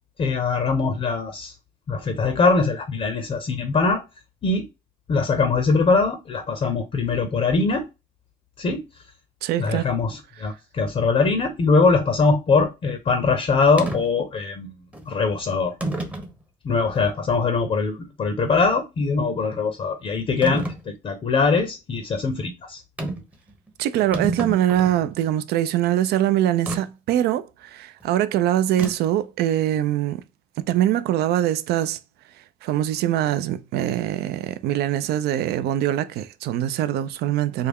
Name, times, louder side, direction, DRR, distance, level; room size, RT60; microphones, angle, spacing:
voice 1, 0.2-1.5 1.9-4.0 4.4-4.7 5.1-7.8 8.6-8.8 9.6-14.7 15.1-15.7 16.6-22.8, left 4 dB, 35° left, 0.6 m, -22 dB
voice 2, 9.4-9.9 23.8-30.2 30.7-32.0 32.6-37.7, right 12 dB, 70° right, 0.4 m, -23 dB
sound 1, 13.8-14.0 14.9-15.1 15.8-16.3 17.0-17.1 20.4-20.8 23.0-23.3 23.7-23.8 24.0-25.1 26.7-26.8 28.8-29.2, right 2 dB, 10° right, 0.7 m, -29 dB
3.4 x 2.2 x 3.5 m
cardioid pair, 110°, 17 cm